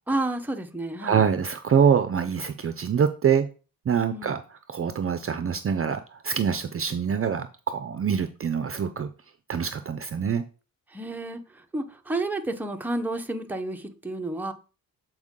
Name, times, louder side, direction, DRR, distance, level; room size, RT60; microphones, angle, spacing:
voice 1, 0.1-1.2 4.1-4.4 10.9-11.4 11.7-14.5, right 2 dB, 5° right, 0.8 m, -30 dB
voice 2, 1.0-3.5 3.9-9.1 9.5-10.4, right 7 dB, 40° right, 0.5 m, -25 dB
7.9 x 4.6 x 3.7 m
cardioid pair, 115°, 36 cm